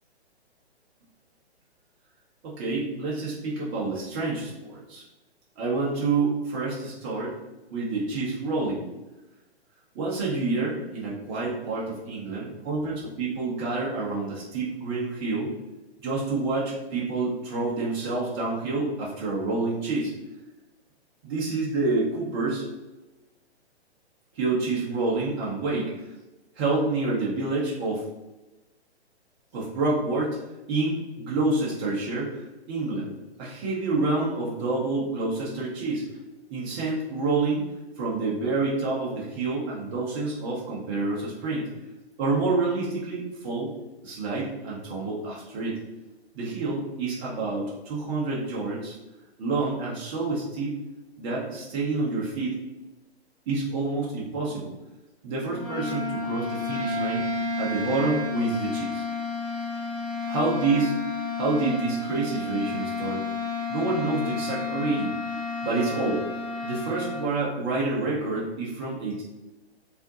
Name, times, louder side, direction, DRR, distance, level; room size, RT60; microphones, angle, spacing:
voice 1, 2.4-5.0 5.6-7.3 7.7-8.8 9.9-15.5 16.0-20.1 21.2-22.7 24.3-26.1 26.6-28.0 29.5-30.4 30.7-33.1 33.4-36.0 36.5-37.6 38.0-41.7 42.2-43.7 44.0-45.8 46.3-49.0 49.4-50.8 51.2-52.6 53.5-54.7 55.2-57.2 57.6-59.0 60.2-60.9 61.4-63.2 63.7-65.2 65.6-66.2 66.6-69.2, right 3 dB, 25° right, -5 dB, 0.8 m, -28 dB
sound 1, 55.4-67.3, left 3 dB, ahead, 0.3 m, -31 dB
4.4 x 3.6 x 2.7 m, 1.0 s
figure-of-eight pair, 130°, 33 cm